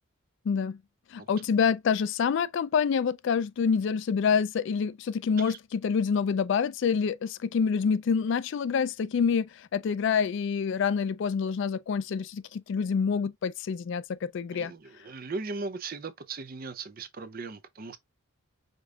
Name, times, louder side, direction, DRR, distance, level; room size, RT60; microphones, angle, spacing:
voice 1, 0.5-0.8 1.1-14.7, left 6 dB, 60° left, 0.3 m, -27 dB
voice 2, 15.0-18.0, right 3 dB, 45° right, 0.6 m, -38 dB
5.1 x 3.7 x 2.3 m
head